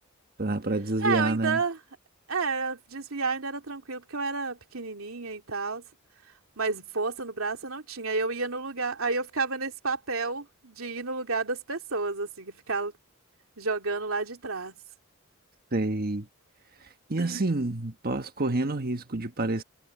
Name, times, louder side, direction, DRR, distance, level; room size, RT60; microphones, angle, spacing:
voice 1, 0.4-1.6 15.7-16.3 17.1-19.6, right 2 dB, 45° right, 1.4 m, -28 dB
voice 2, 1.0-1.8 2.3-5.8 6.6-12.9 13.6-14.8 17.2-17.5, right 4 dB, 75° right, 2.9 m, -31 dB
head